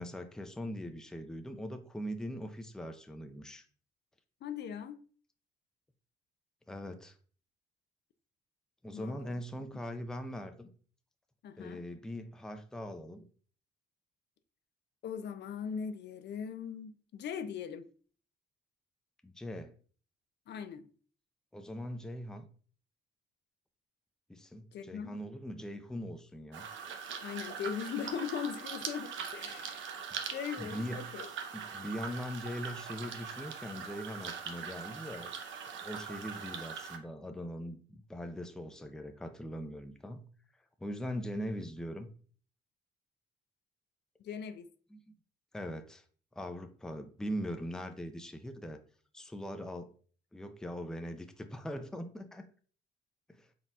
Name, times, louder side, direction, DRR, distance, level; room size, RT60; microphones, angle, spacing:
voice 1, 0.0-3.6 6.7-7.1 8.8-10.7 11.6-13.2 19.2-19.7 21.5-22.5 24.3-26.7 30.6-31.0 31.5-35.3 35.8-40.2 40.8-42.1 44.9-45.0 45.5-46.0 46.4-48.8 49.1-49.9 50.3-52.4 53.3-53.5, equal, 5° left, 0.5 m, -41 dB
voice 2, 4.4-5.0 8.9-9.3 11.4-11.8 15.0-17.9 20.5-20.9 24.7-25.2 27.2-29.9 30.3-31.3 44.2-44.7, left 7 dB, 60° left, 0.4 m, -40 dB
sound 1, 26.5-37.0, right 6 dB, 75° right, 0.7 m, -42 dB
4.1 x 3.8 x 2.3 m
cardioid pair, 90°, 20 cm